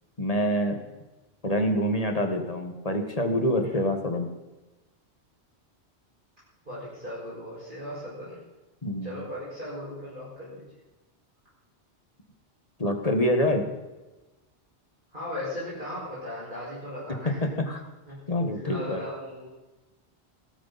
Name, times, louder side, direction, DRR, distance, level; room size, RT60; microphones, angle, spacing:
voice 1, 0.2-0.8 1.4-4.3 8.8-9.2 12.8-13.7 17.4-17.8 18.3-19.0, equal, 35° left, 5 dB, 1.7 m, -26 dB
voice 2, 6.7-8.4 9.0-10.7 15.1-17.6 18.1-18.2 18.5-19.5, left 1 dB, 50° right, -9 dB, 6.2 m, -37 dB
17.0 x 14.0 x 4.2 m, 1.1 s
omnidirectional pair, 1.1 m